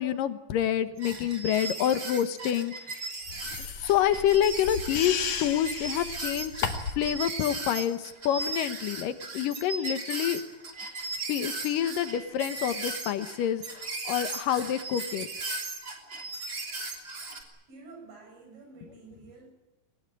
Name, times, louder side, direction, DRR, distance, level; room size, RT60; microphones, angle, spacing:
voice 1, 0.0-2.7 3.8-6.7 6.9-10.4 11.3-15.3, left 10 dB, 75° left, 11 dB, 2.8 m, -27 dB
sound 1, 1.0-17.4, right 3 dB, 35° right, 3.7 m, -37 dB
sound 2, 3.3-7.1, left 6 dB, 55° left, 3.0 m, -35 dB
voice 2, 17.6-19.5, right 3 dB, 80° right, 3 dB, 8.2 m, -49 dB
21.5 x 20.0 x 9.7 m, 0.96 s
omnidirectional pair, 4.0 m